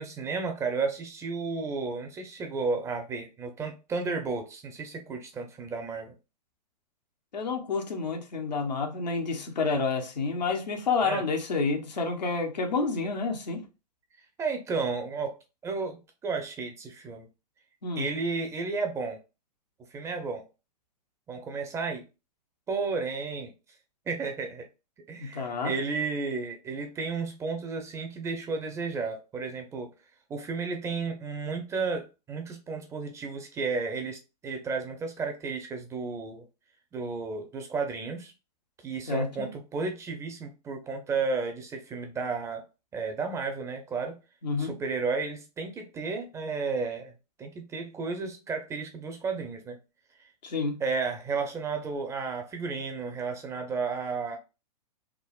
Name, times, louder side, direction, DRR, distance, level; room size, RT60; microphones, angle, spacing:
voice 1, 0.0-6.1 11.0-11.2 14.4-15.4 15.6-17.3 18.0-19.2 19.9-20.5 21.3-22.0 22.7-23.5 24.1-24.7 25.1-29.9 30.3-36.4 36.9-38.3 38.8-42.6 42.9-44.1 44.6-47.1 47.4-49.8 50.8-54.4, right 4 dB, 15° right, 0.5 m, -33 dB
voice 2, 7.3-13.6 17.8-18.1 25.2-25.7 39.1-39.5 44.4-44.7 50.4-50.8, left 4 dB, 85° left, 0.9 m, -29 dB
3.6 x 2.0 x 2.3 m
hypercardioid pair, 125°, 21 cm